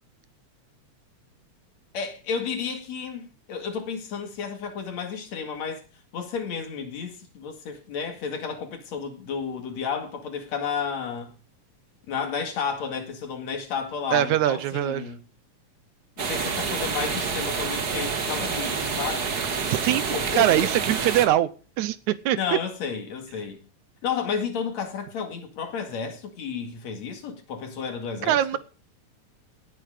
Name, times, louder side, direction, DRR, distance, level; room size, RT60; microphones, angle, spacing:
voice 1, 1.9-5.8 6.1-11.3 12.1-15.2 16.2-19.5 19.9-20.7 22.4-23.6 24.0-28.6, left 6 dB, 65° left, 3.2 m, -32 dB
voice 2, 14.1-15.1 19.7-21.5 21.8-22.4 28.2-28.6, right 13 dB, 80° right, 2.2 m, -22 dB
sound 1, 16.2-21.3, right 5 dB, 40° right, 1.6 m, -28 dB
17.5 x 9.3 x 5.0 m
omnidirectional pair, 3.4 m